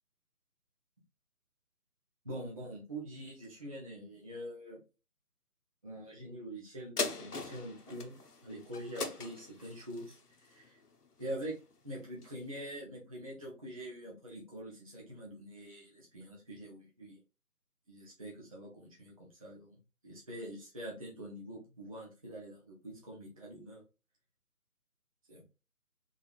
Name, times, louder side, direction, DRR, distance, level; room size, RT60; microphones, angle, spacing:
voice 1, 2.2-4.8 5.8-8.2 8.4-10.8 11.2-11.6 11.8-17.2 17.9-23.8 25.3-25.4, right 1 dB, 25° right, -4 dB, 0.7 m, -45 dB
sound 1, 7.0-11.7 12.2-12.3, left 4 dB, 80° left, 0.9 m, -40 dB
3.6 x 3.5 x 2.4 m, 0.31 s
figure-of-eight pair, 150°, 46 cm